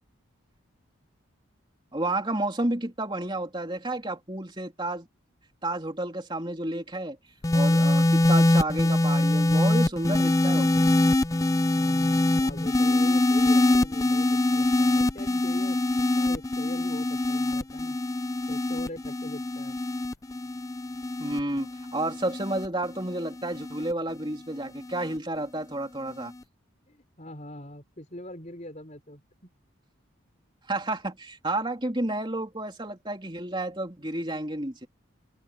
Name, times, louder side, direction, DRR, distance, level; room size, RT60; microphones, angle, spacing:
voice 1, 1.9-5.1 5.6-7.2 7.5-10.9 21.2-26.3 30.7-34.9, right 1 dB, 20° right, 3.2 m, -31 dB
sound 1, 7.4-23.9 24.8-25.2, left 2 dB, 15° left, 0.4 m, -24 dB
voice 2, 11.8-18.0 18.5-19.8 26.9-29.2, left 1 dB, 35° left, 5.6 m, -43 dB
head